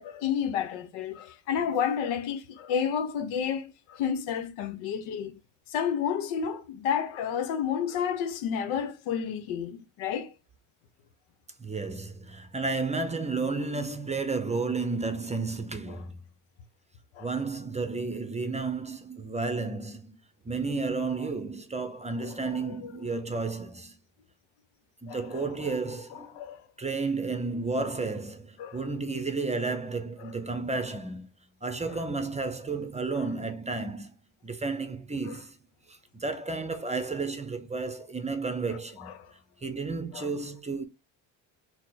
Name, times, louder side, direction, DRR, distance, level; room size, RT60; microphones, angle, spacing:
voice 1, 0.0-5.3 5.7-10.3 15.9-16.0 17.1-17.3 22.2-22.8 25.1-25.8 26.3-26.6 28.6-28.8 30.2-30.3 31.9-32.0 39.0-39.3 40.1-40.3, left 8 dB, 90° left, 0.9 m, -31 dB
voice 2, 11.6-16.2 17.2-20.2 20.5-24.0 25.0-26.4 26.8-31.3 31.6-34.1 34.4-35.5 35.9-39.1 39.6-40.8, right 3 dB, 15° right, 0.6 m, -32 dB
4.5 x 2.2 x 3.9 m
cardioid pair, 90°, 47 cm